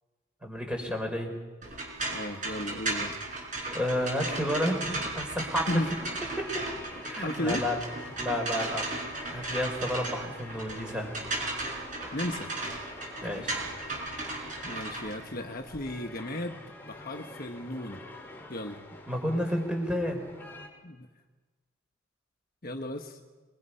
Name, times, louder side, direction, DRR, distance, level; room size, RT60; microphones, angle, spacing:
voice 1, 0.4-1.3 3.6-5.6 6.4-6.5 7.0-7.8 8.2-8.9 9.2-11.1 13.2-13.6 19.1-20.2, equal, 5° right, 3 dB, 4.1 m, -31 dB
sound 1, 1.6-15.8, right 2 dB, 40° right, 5.4 m, -36 dB
voice 2, 2.1-3.1 5.7-5.9 7.2-7.6 12.1-12.5 14.6-18.0 18.5-18.8 20.8-21.1 22.6-23.2, left 1 dB, 45° left, 4 dB, 1.2 m, -35 dB
sound 2, 5.7-20.7, left 2 dB, 10° left, 3.2 m, -47 dB
27.5 x 22.0 x 5.6 m, 1.3 s
head